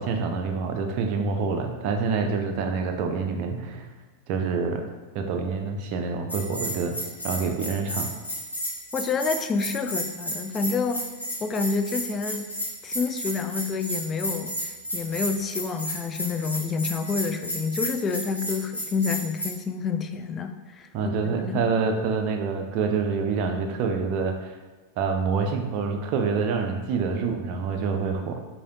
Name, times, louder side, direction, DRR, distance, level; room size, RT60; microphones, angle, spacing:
voice 1, 0.0-3.9 4.3-4.8 5.1-7.0 7.2-8.1 20.9-24.5 25.0-28.4, right 5 dB, 45° right, 4 dB, 0.5 m, -27 dB
Bell, 6.3-19.5, equal, 90° left, 1.4 m, -32 dB
voice 2, 8.9-11.0 11.4-12.5 12.8-20.9 21.2-21.7, left 5 dB, 25° left, 8 dB, 0.3 m, -28 dB
4.8 x 2.8 x 2.6 m, 1.3 s
figure-of-eight pair, 90°, 0 cm